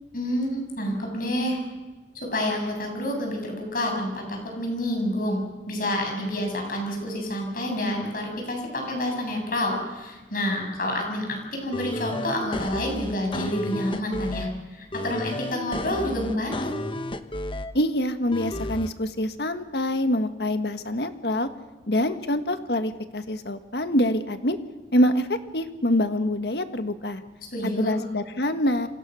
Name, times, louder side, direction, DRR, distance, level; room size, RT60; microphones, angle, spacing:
voice 1, 0.1-1.6 2.1-16.7 27.5-27.9, left 1 dB, 50° left, 2 dB, 7.4 m, -28 dB
sound 1, 11.7-14.5 14.9-17.7 18.3-18.9, left 1 dB, 30° left, 1.0 m, -32 dB
voice 2, 17.7-21.5 21.9-24.6 24.9-27.2 27.8-28.9, left 1 dB, 70° left, 9 dB, 1.6 m, -25 dB
28.5 x 25.5 x 6.4 m, 1.2 s
head